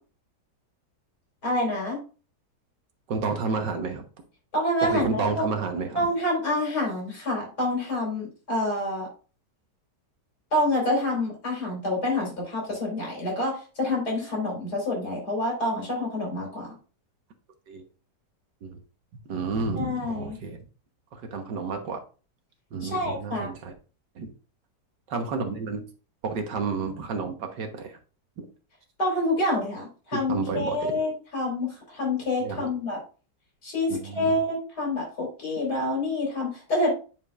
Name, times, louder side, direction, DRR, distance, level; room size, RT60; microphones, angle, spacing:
voice 1, 1.4-2.0 4.5-5.5 5.9-9.1 10.5-16.8 19.8-20.4 22.8-23.5 29.0-33.0 33.6-36.9, left 1 dB, 60° left, -2 dB, 4.8 m, -27 dB
voice 2, 3.1-4.0 4.9-6.1 17.7-17.8 18.6-18.8 19.3-20.6 21.1-22.0 22.7-23.7 24.2-24.3 25.1-25.8 26.2-28.0 28.4-28.5 30.1-30.9 32.4-32.7 33.9-34.4, right 4 dB, 75° right, 4 dB, 1.8 m, -30 dB
9.5 x 5.1 x 2.5 m, 0.34 s
omnidirectional pair, 1.9 m